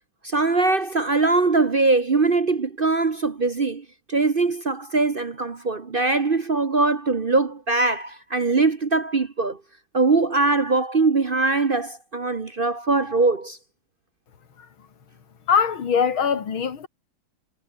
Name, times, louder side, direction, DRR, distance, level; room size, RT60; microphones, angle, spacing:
voice 1, 0.2-9.6 9.9-13.6, right 3 dB, 40° right, 0.9 m, -22 dB
voice 2, 15.5-16.9, left 6 dB, 75° left, 3.0 m, -22 dB
omnidirectional pair, 2.3 m